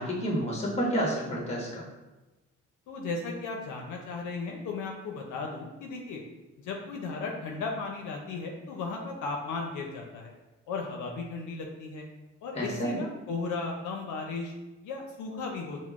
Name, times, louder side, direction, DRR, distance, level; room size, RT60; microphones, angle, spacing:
voice 1, 0.0-1.8 12.5-13.0, equal, 20° left, -4 dB, 1.2 m, -30 dB
voice 2, 2.9-6.2 6.6-10.3 10.7-12.1 12.4-14.5 14.8-15.8, left 4 dB, 75° left, 1 dB, 0.5 m, -35 dB
5.6 x 2.0 x 2.4 m, 1.1 s
cardioid pair, 90°, 30 cm